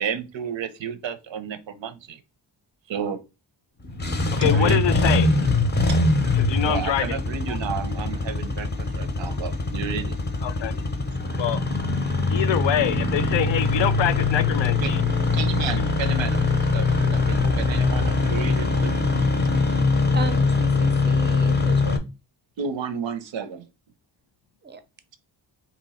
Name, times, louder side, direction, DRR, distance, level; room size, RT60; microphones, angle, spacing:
voice 1, 0.0-2.2 2.9-3.2 4.4-5.1 5.9-6.0 6.6-10.2 14.8-18.9 22.6-23.7, right 7 dB, 90° right, 0.6 m, -32 dB
Engine starting, 3.8-22.0, left 3 dB, 25° left, 0.5 m, -22 dB
voice 2, 4.3-5.4 6.3-7.2 7.5-7.6 10.4-10.8 11.4-11.6 12.3-15.0, left 10 dB, 80° left, 0.5 m, -25 dB
voice 3, 20.1-22.0 24.6-24.8, right 3 dB, 25° right, 0.4 m, -35 dB
2.9 x 2.6 x 4.1 m
wide cardioid pair, 110°, 44 cm